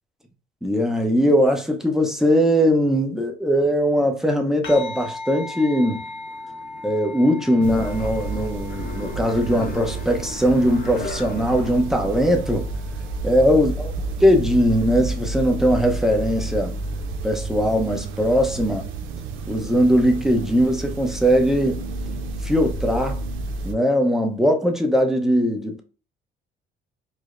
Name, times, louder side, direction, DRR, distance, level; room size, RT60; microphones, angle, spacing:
voice 1, 0.6-6.0 6.8-12.7 13.2-13.9 14.2-16.7 17.2-18.9 19.5-21.8 22.4-23.2 23.6-25.8, equal, ahead, 0.7 m, -20 dB
sound 1, 4.6-13.3, left 2 dB, 75° left, 1.0 m, -39 dB
sound 2, 5.6-11.8, left 4 dB, 55° left, 0.8 m, -38 dB
sound 3, 7.6-23.7, right 2 dB, 90° right, 0.5 m, -30 dB
4.8 x 2.0 x 2.4 m
cardioid pair, 90°, 20 cm